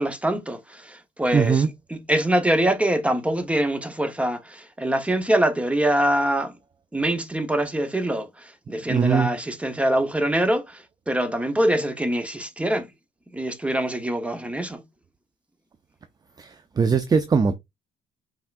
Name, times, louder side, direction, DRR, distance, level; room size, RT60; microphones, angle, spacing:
voice 1, 0.0-6.5 6.9-12.9 13.3-14.8, right 1 dB, 5° right, 0.9 m, -24 dB
voice 2, 1.3-1.7 8.9-9.3 16.4-17.6, right 5 dB, 25° right, 0.5 m, -21 dB
5.6 x 3.5 x 2.5 m
cardioid pair, 110°, 17 cm